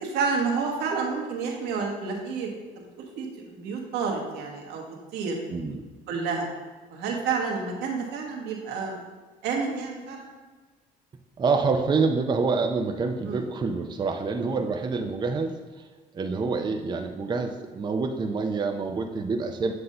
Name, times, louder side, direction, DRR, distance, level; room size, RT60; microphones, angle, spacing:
voice 1, 0.0-2.9 3.2-4.8 5.1-5.4 6.1-6.5 6.9-9.0 9.4-10.3 13.3-13.5 14.5-14.6 16.5-16.7, right 5 dB, 85° right, 0 dB, 1.3 m, -30 dB
voice 2, 5.5-5.9 11.4-15.9 16.1-19.7, right 4 dB, 25° right, 4 dB, 0.5 m, -27 dB
7.8 x 2.7 x 5.4 m, 1.3 s
cardioid pair, 110°, 17 cm